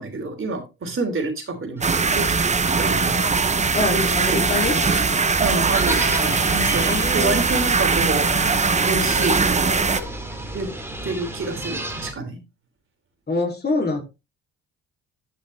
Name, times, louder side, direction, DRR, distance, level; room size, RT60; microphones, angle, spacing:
voice 1, 0.0-2.3 2.8-3.2 3.9-4.0 4.3-4.4 5.4-8.3 8.8-9.8 10.5-10.7 11.0-12.4, right 3 dB, 45° right, 5 dB, 3.2 m, -28 dB
sound 1, 1.8-12.1, right 1 dB, 10° right, 2.6 m, -34 dB
sound 2, 1.8-10.0, right 4 dB, 25° right, 0.8 m, -21 dB
sound 3, 2.5-3.7 4.0-5.4 5.7-7.8 8.1-10.1, left 8 dB, 90° left, 1.5 m, -37 dB
voice 2, 3.7-4.8 6.8-7.4 13.3-14.0, left 3 dB, 30° left, 3 dB, 2.8 m, -25 dB
11.0 x 5.9 x 3.3 m, 0.26 s
cardioid pair, 90°, 30 cm